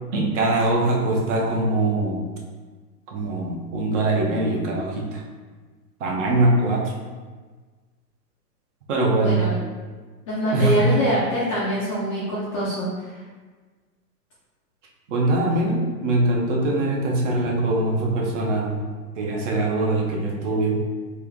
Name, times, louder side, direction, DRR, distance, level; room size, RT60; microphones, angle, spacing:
voice 1, 0.1-2.3 3.1-5.2 6.0-6.9 8.9-9.5 10.5-11.0 15.1-18.8 19.2-20.8, right 2 dB, 45° right, -1 dB, 0.9 m, -22 dB
voice 2, 9.2-9.6 10.3-12.9, equal, 20° left, -9 dB, 0.4 m, -24 dB
3.3 x 3.0 x 3.6 m, 1.4 s
hypercardioid pair, 150°, 49 cm